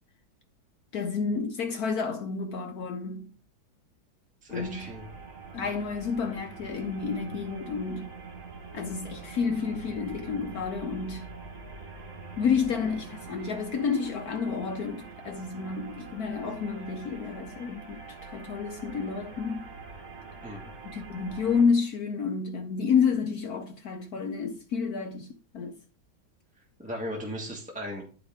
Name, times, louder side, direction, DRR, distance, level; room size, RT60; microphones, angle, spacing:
voice 1, 0.9-3.4 4.5-4.9 5.5-8.2 8.7-11.3 12.4-19.7 20.8-25.8, left 5 dB, 65° left, 1.0 m, -30 dB
voice 2, 4.4-5.0 20.4-20.7 26.8-28.0, equal, 5° right, 1.1 m, -37 dB
sound 1, 4.5-21.6, right 4 dB, 50° right, 1.8 m, -44 dB
10.5 x 4.9 x 3.5 m
omnidirectional pair, 2.2 m